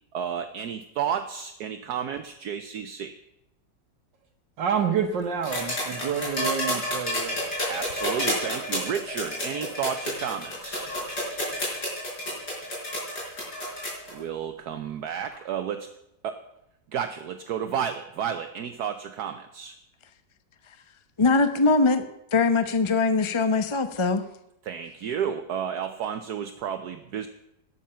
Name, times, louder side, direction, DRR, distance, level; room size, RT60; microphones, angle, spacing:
voice 1, 0.1-3.2 7.7-10.9 14.1-15.9 16.2-16.4 16.9-19.8 24.6-27.3, right 8 dB, 65° right, 7 dB, 1.3 m, -32 dB
voice 2, 4.6-7.5, right 7 dB, 85° right, 1 dB, 2.0 m, -28 dB
sound 1, 5.4-14.1 15.3-15.4, left 1 dB, 65° left, 6.4 m, -30 dB
voice 3, 21.2-22.0 22.3-24.2, left 3 dB, 30° left, 10 dB, 0.5 m, -22 dB
17.5 x 12.0 x 5.7 m, 0.82 s
omnidirectional pair, 1.9 m